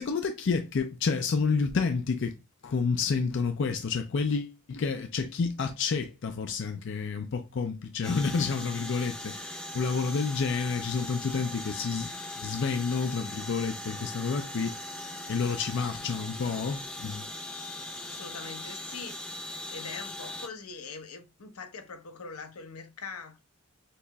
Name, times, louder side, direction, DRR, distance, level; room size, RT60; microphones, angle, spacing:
voice 1, 0.0-2.4 2.6-14.7 15.3-17.3, left 5 dB, 55° left, 0.4 m, -29 dB
sound 1, 8.0-20.5, left 1 dB, 5° left, 0.6 m, -40 dB
voice 2, 18.1-19.2 19.7-23.4, left 4 dB, 85° left, 0.9 m, -42 dB
6.6 x 2.9 x 2.3 m
head